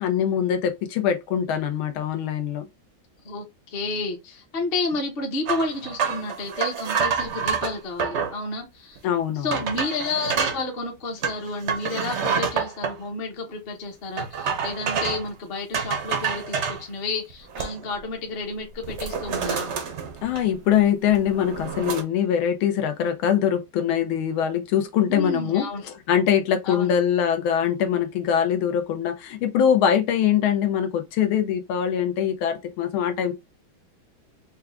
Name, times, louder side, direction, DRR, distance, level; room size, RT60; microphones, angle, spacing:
voice 1, 0.0-2.7 9.0-9.6 20.2-33.3, left 9 dB, 85° left, 1.5 m, -23 dB
voice 2, 3.2-9.0 9.4-19.7 25.1-25.8 26.6-27.0, left 3 dB, 40° left, 0.9 m, -31 dB
sound 1, 5.5-8.4 9.0-9.1 9.5-10.6 11.2-12.9 14.2-15.3 15.7-16.8 17.3-18.0 18.3-18.5 18.8-20.7 21.1-22.0, right 6 dB, 70° right, 0.6 m, -28 dB
4.7 x 2.3 x 3.4 m
omnidirectional pair, 2.2 m